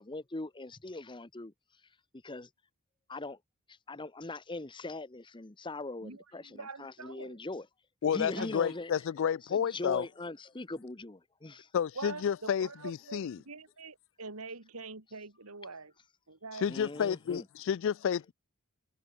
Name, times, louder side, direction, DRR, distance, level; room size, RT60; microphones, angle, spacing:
voice 1, 0.0-1.5 2.2-2.5 3.1-3.4 3.9-7.7 8.1-8.9 9.5-11.7 16.7-17.4, left 2 dB, 20° left, 0.9 m, -41 dB
voice 2, 6.0-7.4 8.3-8.7 11.9-12.3 12.6-15.9 16.3-16.7, right 3 dB, 80° right, 3.0 m, -45 dB
voice 3, 8.0-10.1 11.7-13.4 16.6-18.3, left 8 dB, 60° left, 0.3 m, -31 dB
head